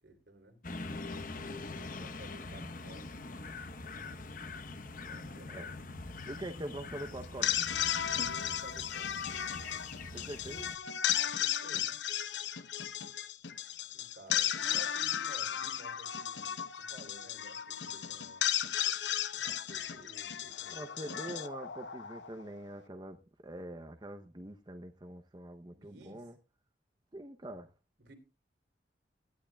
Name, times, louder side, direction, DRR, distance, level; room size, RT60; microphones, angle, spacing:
voice 1, 0.0-0.6 0.9-3.1 5.0-5.8 8.0-9.1 11.2-12.0 13.9-18.5 19.3-21.1 25.7-26.3 28.0-28.1, right 1 dB, 70° right, 5 dB, 3.1 m, -54 dB
sound 1, 0.6-10.7, left 3 dB, 45° left, 0.9 m, -44 dB
voice 2, 6.3-7.6 10.1-10.7 20.7-26.4 27.1-27.7, right 1 dB, 25° right, 7 dB, 0.7 m, -44 dB
sound 2, 7.2-22.5, left 10 dB, 80° left, 0.8 m, -35 dB
17.5 x 12.5 x 2.3 m, 0.29 s
head